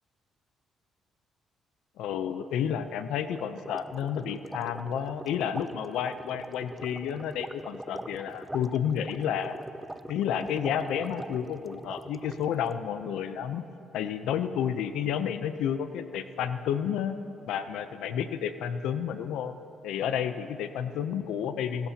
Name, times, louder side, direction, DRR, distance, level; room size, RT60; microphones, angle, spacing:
voice 1, 2.0-9.6 10.1-13.6 13.9-17.2 17.5-19.5 19.8-21.9, left 8 dB, 90° left, 10 dB, 0.6 m, -31 dB
sound 1, 3.3-12.7, right 1 dB, 10° right, 0.4 m, -42 dB
28.5 x 13.0 x 2.9 m, 2.7 s
cardioid pair, 90°, 0 cm